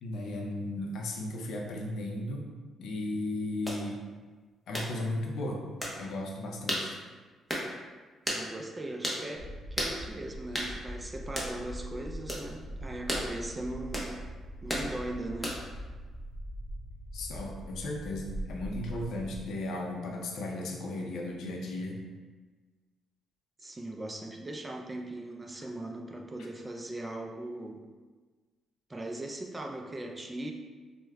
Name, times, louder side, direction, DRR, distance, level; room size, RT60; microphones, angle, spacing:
voice 1, 0.0-2.5 2.8-4.0 4.7-5.6 6.0-7.0 17.1-22.0, left 1 dB, 75° left, 0 dB, 0.5 m, -35 dB
sound 1, 3.7-3.8 4.7-4.9 5.8-6.0 6.7-6.9 7.5-7.7 8.3-8.4 9.0-9.2 9.8-10.0 10.5-10.7 11.4-11.5 12.3-12.5 13.1-13.3 13.9-14.1 14.7-14.9 15.4-15.7, equal, 10° left, 0.7 m, -32 dB
voice 2, 8.3-14.1 14.6-15.5 23.6-27.8 28.9-30.5, right 1 dB, 20° right, 3 dB, 0.3 m, -39 dB
sound 2, 9.3-19.5, equal, 55° right, 1.0 m, -42 dB
4.7 x 2.1 x 2.2 m, 1.4 s
cardioid pair, 90°, 0 cm